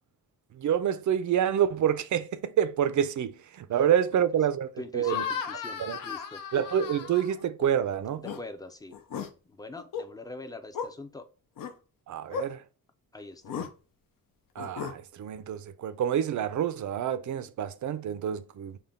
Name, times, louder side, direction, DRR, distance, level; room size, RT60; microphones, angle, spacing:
voice 1, 0.5-5.2 5.8-6.0 6.5-8.2 12.1-12.6 14.6-18.8, right 9 dB, 55° right, 0.5 m, -27 dB
voice 2, 4.8-6.4 8.2-9.0 9.4-11.3 13.1-13.7, left 2 dB, 10° left, 0.5 m, -43 dB
sound 1, 5.0-7.7 8.1-8.4 8.9-9.3 9.8-10.1 10.7-10.9 11.6-11.7 12.3-12.5 13.4-13.7 14.6-15.0, left 7 dB, 65° left, 0.7 m, -35 dB
5.7 x 2.2 x 3.5 m
wide cardioid pair, 155°, 36 cm